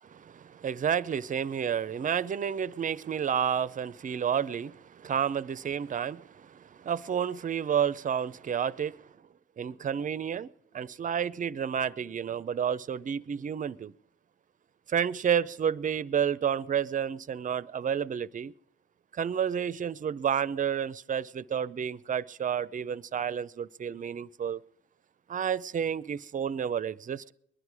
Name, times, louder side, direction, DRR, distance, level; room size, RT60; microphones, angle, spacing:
voice 1, 0.2-9.0 9.6-13.9 14.9-18.5 19.1-24.6 25.3-27.3, right 8 dB, 40° right, 0.6 m, -30 dB
20.5 x 11.0 x 4.8 m
cardioid pair, 90°, 20 cm